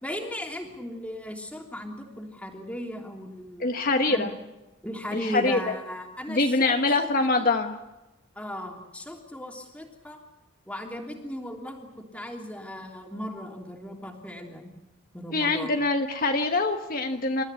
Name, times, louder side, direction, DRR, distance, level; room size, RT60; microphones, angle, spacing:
voice 1, 0.0-3.8 4.1-4.3 4.8-7.5 8.3-10.2 10.7-14.7 15.1-15.7, equal, 5° left, 1 dB, 3.1 m, -37 dB
voice 2, 3.6-4.3 5.1-5.6 6.3-7.8 15.3-17.4, left 2 dB, 45° left, 4 dB, 1.3 m, -24 dB
28.5 x 14.0 x 9.7 m, 1.0 s
head